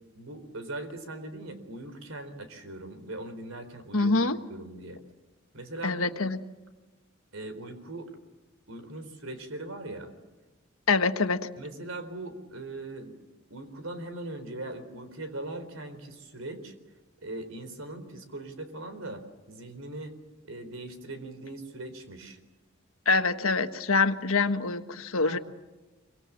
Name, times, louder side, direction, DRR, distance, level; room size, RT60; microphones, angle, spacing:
voice 1, 0.1-4.1 4.5-5.0 5.5-6.1 7.3-8.1 8.7-10.1 11.6-13.1 13.5-16.7 17.2-20.1 20.4-22.4 25.2-25.4, right 2 dB, 80° right, 10 dB, 4.0 m, -40 dB
voice 2, 3.9-4.4 5.8-6.4 10.9-11.4 23.0-25.4, left 4 dB, 80° left, 8 dB, 1.4 m, -25 dB
26.0 x 24.5 x 7.5 m, 1.2 s
head